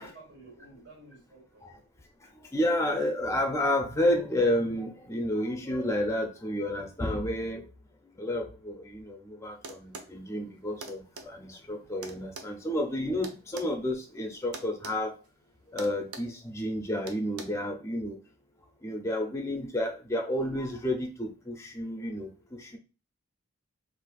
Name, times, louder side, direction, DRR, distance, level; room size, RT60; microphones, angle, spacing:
voice 1, 0.0-1.7 19.0-19.4, right 2 dB, 55° right, 1.3 m, -53 dB
voice 2, 2.5-7.6 8.2-15.1 15.7-18.2 18.8-22.8, left 1 dB, 15° left, 0.4 m, -30 dB
sound 1, 9.6-10.1 10.8-11.3 12.0-13.7 14.5-15.0 15.2-15.4 15.8-16.3 17.1-17.4, right 3 dB, 80° right, 0.6 m, -42 dB
4.1 x 2.5 x 2.3 m
head